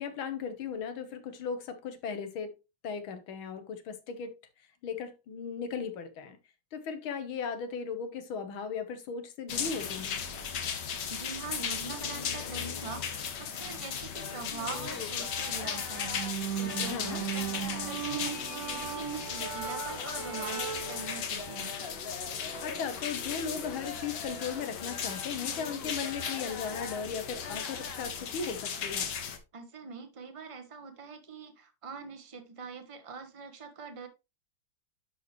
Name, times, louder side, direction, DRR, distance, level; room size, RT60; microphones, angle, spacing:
voice 1, 0.0-2.5 2.8-4.3 4.8-6.4 6.7-10.2 16.8-17.2 22.6-29.1, left 6 dB, 80° left, 1.9 m, -37 dB
sound 1, 9.5-29.4, left 7 dB, 60° left, 1.6 m, -37 dB
voice 2, 11.1-18.4 18.7-21.7 29.5-34.1, right 5 dB, 25° right, 0.8 m, -43 dB
sound 2, 14.1-28.0, left 4 dB, 45° left, 0.8 m, -44 dB
sound 3, 16.0-21.1, right 10 dB, 60° right, 1.1 m, -37 dB
11.0 x 4.3 x 3.1 m
omnidirectional pair, 2.2 m